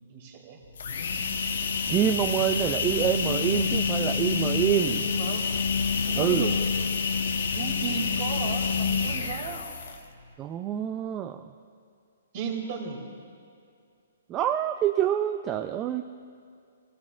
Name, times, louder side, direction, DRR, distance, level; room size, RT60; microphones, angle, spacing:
voice 1, 0.1-0.6 4.9-5.5 6.0-6.6 7.5-9.6 12.3-13.0, right 6 dB, 40° right, 1 dB, 2.5 m, -35 dB
sound 1, 0.6-10.1, left 5 dB, 75° left, 1.1 m, -27 dB
voice 2, 1.9-5.1 6.2-6.5 10.4-11.5 14.3-16.0, right 10 dB, 20° right, 7 dB, 0.4 m, -26 dB
24.5 x 16.0 x 2.5 m, 2.3 s
hypercardioid pair, 155°, 0 cm